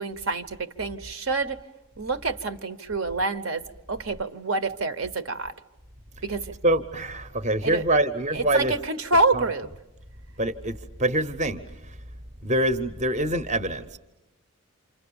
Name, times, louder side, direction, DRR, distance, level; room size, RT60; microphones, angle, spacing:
voice 1, 0.0-1.6 2.0-3.6 3.9-5.5 6.2-6.4 7.6-7.8 8.3-9.7, right 3 dB, 65° right, 11 dB, 1.0 m, -27 dB
voice 2, 6.6-8.7 9.3-9.4 10.4-10.7 11.0-11.6 12.4-13.8, right 1 dB, 30° right, 11 dB, 0.9 m, -24 dB
28.5 x 26.5 x 7.0 m, 0.95 s
head